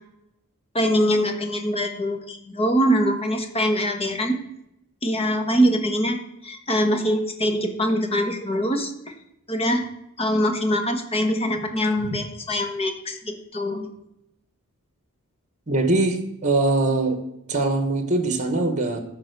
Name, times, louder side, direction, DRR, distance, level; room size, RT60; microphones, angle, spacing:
voice 1, 0.7-4.3 5.0-6.2 6.4-9.1 9.5-9.9 10.2-13.9, equal, 25° left, 5 dB, 1.3 m, -23 dB
voice 2, 15.7-17.2 17.5-19.0, right 2 dB, 35° right, 7 dB, 1.3 m, -22 dB
14.0 x 4.6 x 6.7 m, 0.82 s
head